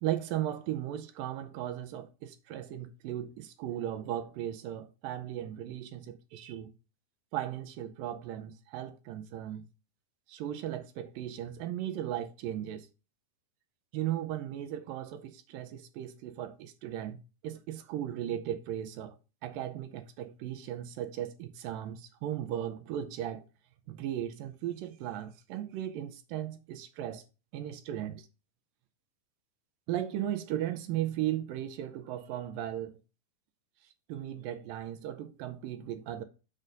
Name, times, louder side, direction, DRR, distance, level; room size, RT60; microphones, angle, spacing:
voice 1, 0.0-6.7 7.3-9.7 10.3-12.9 13.9-19.2 19.4-23.4 23.9-27.2 27.5-28.3 29.9-33.0 34.1-36.2, right 11 dB, 75° right, 2.2 m, -36 dB
6.3 x 4.2 x 5.1 m
omnidirectional pair, 4.4 m